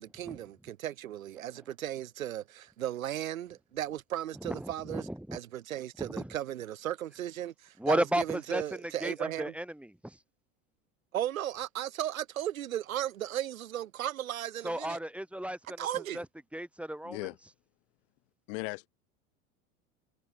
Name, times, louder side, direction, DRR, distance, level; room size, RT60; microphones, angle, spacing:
voice 1, 0.0-9.5 11.1-15.0 15.8-16.2, right 12 dB, 80° right, 3.3 m, -36 dB
voice 2, 4.4-5.4 6.0-6.3 7.8-10.2 14.6-15.9 16.1-16.3 16.5-17.2, right 1 dB, 5° right, 5.1 m, -34 dB
voice 3, 17.0-17.4 18.5-18.9, left 36 dB, 65° left, 7.9 m, -37 dB
hypercardioid pair, 80°, 40 cm